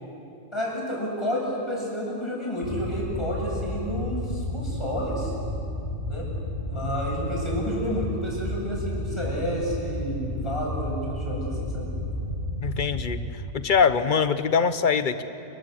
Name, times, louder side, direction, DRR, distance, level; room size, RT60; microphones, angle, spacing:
voice 1, 0.5-5.3 6.1-6.2 6.6-11.9, equal, 20° left, -4 dB, 8.0 m, -30 dB
sound 1, 2.6-13.2, left 1 dB, 45° right, 3.5 m, -32 dB
voice 2, 12.6-15.2, left 6 dB, 40° left, 11 dB, 1.1 m, -23 dB
29.5 x 22.0 x 7.9 m, 2.8 s
omnidirectional pair, 1.5 m